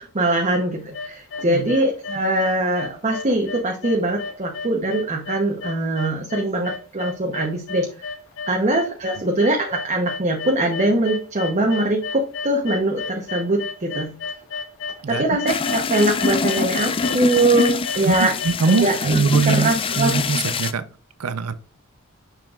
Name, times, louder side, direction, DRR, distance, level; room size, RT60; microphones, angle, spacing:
voice 1, 0.0-8.1 8.5-14.1 15.1-18.3 18.6-20.2, right 2 dB, 35° right, 0.9 m, -22 dB
sound 1, 0.7-18.8, left 5 dB, 60° left, 1.4 m, -32 dB
sound 2, 15.5-20.7, left 4 dB, 25° left, 0.4 m, -25 dB
voice 2, 18.0-20.8 21.2-21.5, right 4 dB, 90° right, 0.6 m, -22 dB
6.6 x 6.2 x 2.4 m
head